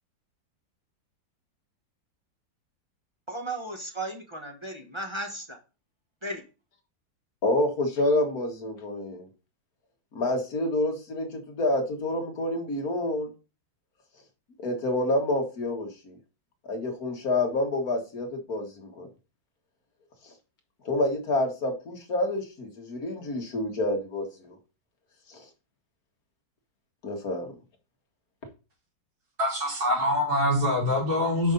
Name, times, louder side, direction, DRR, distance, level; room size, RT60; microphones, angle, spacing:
voice 1, 3.3-5.6 6.2-6.4, right 1 dB, 20° right, 2 dB, 0.8 m, -35 dB
voice 2, 7.4-9.3 10.1-13.3 14.6-16.2 16.6-19.1 20.9-24.6 25.3-25.4 27.0-27.5, left 1 dB, 55° left, 3 dB, 1.9 m, -28 dB
voice 3, 29.4-31.5, left 1 dB, 55° right, -5 dB, 4.1 m, -24 dB
6.2 x 5.3 x 3.8 m, 0.31 s
omnidirectional pair, 2.0 m